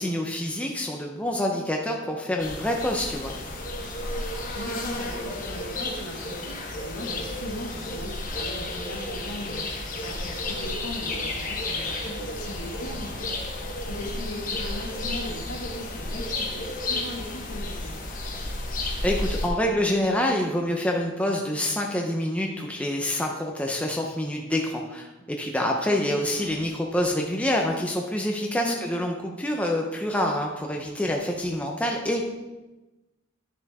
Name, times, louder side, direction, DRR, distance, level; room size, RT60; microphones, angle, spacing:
voice 1, 0.0-3.3 19.0-32.2, left 1 dB, 5° left, 0 dB, 0.6 m, -27 dB
sound 1, 2.4-19.5, left 2 dB, 40° left, 1.3 m, -32 dB
voice 2, 4.5-18.1 25.9-26.5 28.6-28.8, left 1 dB, 85° left, -6 dB, 1.9 m, -39 dB
10.5 x 6.9 x 3.6 m, 1.1 s
head